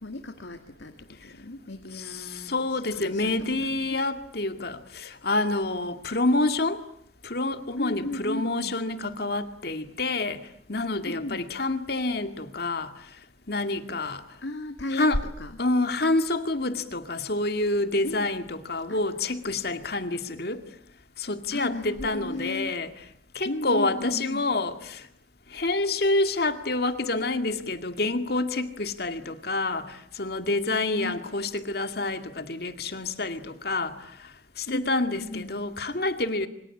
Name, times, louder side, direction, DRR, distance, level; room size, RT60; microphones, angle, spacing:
voice 1, 0.0-3.3 3.6-4.0 7.8-8.8 11.1-11.5 14.4-15.1 15.4-15.5 18.0-18.3 18.9-19.0 21.5-22.7 23.4-24.5 30.9-31.2 34.7-35.5, left 1 dB, 80° left, 2.1 m, -35 dB
voice 2, 1.9-6.8 7.2-13.1 13.5-14.2 14.9-15.2 15.6-20.6 21.2-22.9 23.3-25.1 25.5-36.5, left 2 dB, 55° left, 2.2 m, -28 dB
27.5 x 24.5 x 8.6 m
head